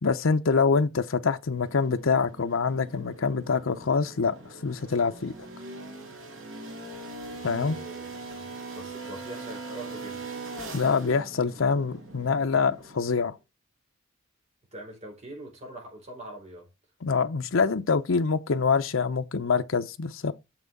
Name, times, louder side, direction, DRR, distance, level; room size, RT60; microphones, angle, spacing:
voice 1, 0.0-4.3 4.6-5.3 7.4-7.8 10.7-13.4 17.0-20.3, left 5 dB, 75° left, 0.7 m, -25 dB
sound 1, 1.5-13.3, right 3 dB, 70° right, 3.4 m, -41 dB
voice 2, 7.3-8.5 8.7-10.2 14.7-16.7, right 1 dB, 35° right, 4.5 m, -43 dB
7.0 x 6.0 x 5.3 m
head